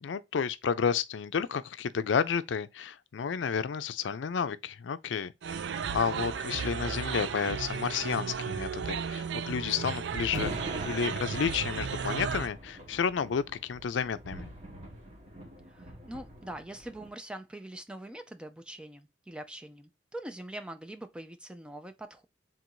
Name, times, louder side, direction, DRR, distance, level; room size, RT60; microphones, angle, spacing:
voice 1, 0.0-5.6 5.9-10.5 10.8-14.5, left 6 dB, 85° left, 0.4 m, -31 dB
sound 1, 5.4-12.5, right 6 dB, 75° right, 0.4 m, -34 dB
sound 2, 10.3-17.1, right 1 dB, 35° right, 1.1 m, -43 dB
voice 2, 15.7-22.3, right 1 dB, 5° right, 0.4 m, -43 dB
3.7 x 2.6 x 4.4 m
head